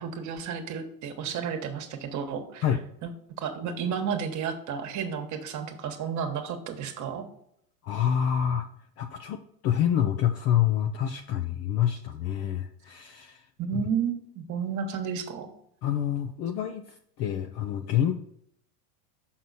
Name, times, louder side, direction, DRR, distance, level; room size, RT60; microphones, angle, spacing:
voice 1, 0.0-2.6 3.0-3.1 3.4-7.2 13.6-15.5, right 7 dB, 35° right, 6 dB, 1.3 m, -32 dB
voice 2, 7.8-8.7 9.0-13.5 13.7-13.8 15.8-18.2, left 10 dB, 35° left, 7 dB, 0.4 m, -27 dB
6.2 x 5.6 x 4.0 m, 0.72 s
supercardioid pair, 120°, 49 cm